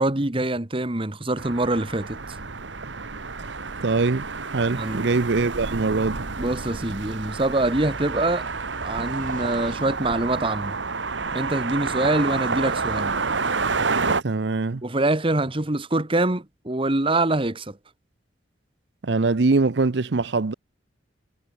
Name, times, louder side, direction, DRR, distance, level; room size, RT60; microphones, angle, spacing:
voice 1, 0.0-2.2 4.7-5.0 6.4-8.5 8.8-10.8 11.3-13.2 14.8-17.8, right 2 dB, 30° right, 1.4 m, -24 dB
sound 1, 1.4-14.2, right 4 dB, 80° right, 1.6 m, -29 dB
voice 2, 3.8-4.3 4.5-6.2 14.2-14.8 19.0-20.5, right 3 dB, 65° right, 0.7 m, -22 dB
sound 2, 7.6-10.2, right 2 dB, 45° right, 4.3 m, -46 dB
head